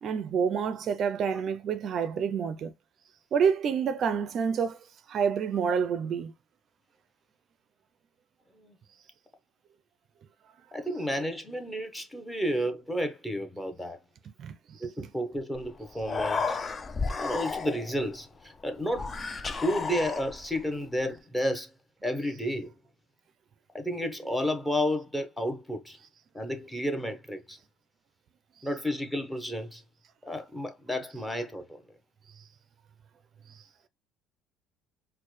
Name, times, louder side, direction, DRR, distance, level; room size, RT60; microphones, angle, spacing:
voice 1, 0.0-2.7 3.3-4.8 5.1-6.3 14.4-14.5 15.0-15.1, right 6 dB, 50° right, 0.4 m, -28 dB
voice 2, 10.7-14.0 14.8-16.6 17.2-19.2 19.6-21.7 22.0-22.7 23.7-26.0 26.3-27.6 28.6-29.8 30.3-31.8, equal, 10° left, 0.9 m, -31 dB
Human voice, 15.5-15.7 15.9-18.0 18.9-20.6, left 4 dB, 30° left, 0.4 m, -32 dB
4.3 x 2.1 x 3.2 m
supercardioid pair, 100°, 0 cm